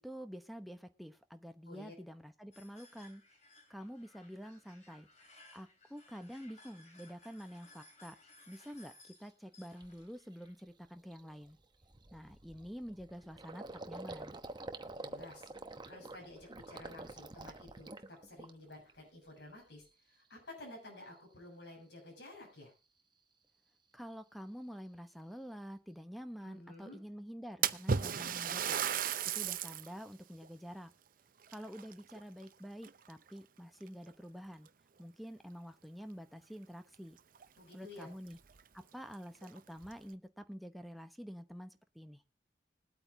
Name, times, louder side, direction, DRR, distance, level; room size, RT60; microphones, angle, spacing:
voice 1, 0.0-3.2 3.7-5.1 5.5-8.2 8.5-11.6 12.1-14.4 23.9-28.8 29.2-30.9 31.5-34.7 35.0-37.2 37.7-38.4 38.7-42.2, equal, ahead, 0.9 m, -48 dB
sound 1, 2.5-10.5, left 2 dB, 45° left, 3.5 m, -61 dB
Gurgling, 9.2-9.3 9.8-10.1 10.4-10.6 10.9-18.9 19.2-19.9, right 2 dB, 25° right, 1.0 m, -48 dB
voice 2, 15.0-15.5 15.9-22.7 26.4-27.0 37.6-38.1, left 2 dB, 85° left, 7.2 m, -52 dB
Splash splatter, 27.6-29.9 30.4-30.5 31.4-32.5 32.8-33.3 34.1-34.2 34.7-34.8 36.9-37.0 37.3-37.4 38.0-38.1 38.5-38.6 39.3-39.9, right 7 dB, 55° right, 0.7 m, -35 dB
21.0 x 8.7 x 2.7 m
head